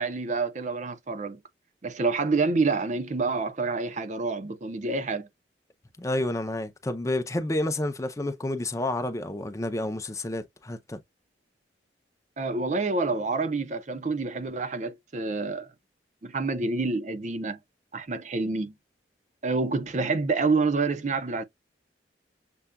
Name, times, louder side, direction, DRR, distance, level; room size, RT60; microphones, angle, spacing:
voice 1, 0.0-1.4 1.8-5.3 12.4-15.7 16.2-17.6 17.9-18.7 19.4-21.4, right 3 dB, 45° right, 0.5 m, -27 dB
voice 2, 6.0-11.0, left 1 dB, 20° left, 0.5 m, -30 dB
6.7 x 2.3 x 2.2 m
head